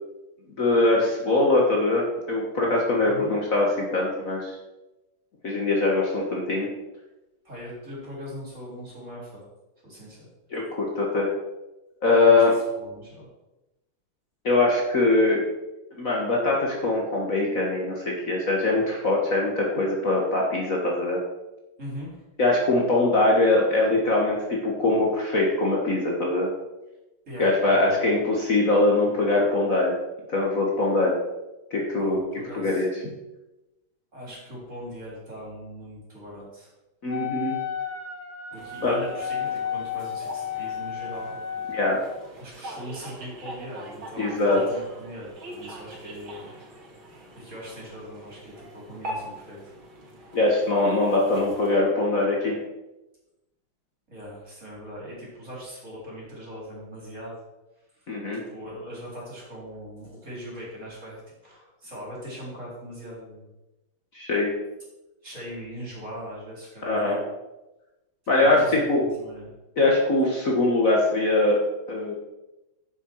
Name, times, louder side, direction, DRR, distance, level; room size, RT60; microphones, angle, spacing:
voice 1, 0.6-4.6 5.4-6.7 10.5-11.3 12.0-12.5 14.4-15.4 16.0-21.2 22.4-26.5 27.4-30.0 30.3-31.2 31.7-32.2 32.5-32.9 37.0-37.6 38.8-38.9 41.7-42.0 44.2-44.6 50.3-52.5 58.1-58.4 64.1-64.5 66.9-67.2 68.3-69.0 69.8-71.6 71.9-72.1, left 2 dB, 45° left, -2 dB, 1.9 m, -22 dB
voice 2, 7.4-9.4 9.8-10.3 12.1-13.3 21.8-22.1 27.3-28.1 32.0-32.9 34.1-36.7 38.5-41.4 42.4-46.5 47.3-49.6 54.1-57.3 58.0-58.1 58.5-63.5 65.2-67.1 68.4-69.5, equal, 35° right, -5 dB, 4.4 m, -40 dB
Wind instrument woodwind instrument, 37.1-42.1, left 8 dB, 25° left, 1.2 m, -32 dB
sound 1, 38.5-51.8, right 1 dB, 75° right, 2.7 m, -43 dB
11.0 x 7.5 x 4.7 m, 0.99 s
omnidirectional pair, 2.3 m